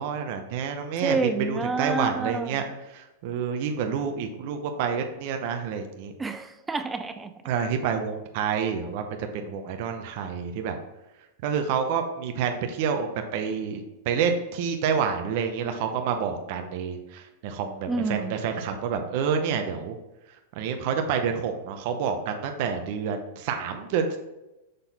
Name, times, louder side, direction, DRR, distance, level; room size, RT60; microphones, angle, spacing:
voice 1, 0.0-6.1 7.4-10.8 11.4-20.0 20.6-24.2, right 6 dB, 55° right, 5 dB, 0.7 m, -28 dB
voice 2, 1.0-2.6 6.2-7.3 17.9-18.4, right 3 dB, 10° right, 10 dB, 0.4 m, -28 dB
6.6 x 3.9 x 4.1 m, 0.97 s
supercardioid pair, 140°, 0 cm